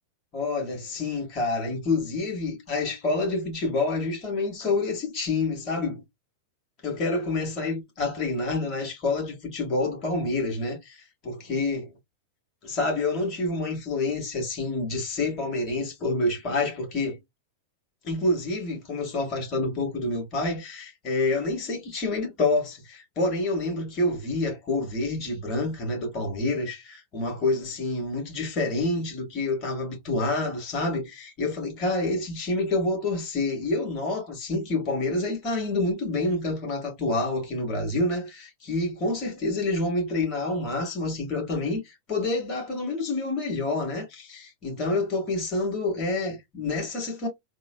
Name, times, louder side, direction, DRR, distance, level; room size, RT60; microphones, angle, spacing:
voice 1, 0.3-6.0 6.8-11.9 12.6-17.2 18.0-47.3, left 2 dB, 35° left, 1.8 m, -28 dB
3.7 x 2.1 x 2.3 m
figure-of-eight pair, 90°, 0 cm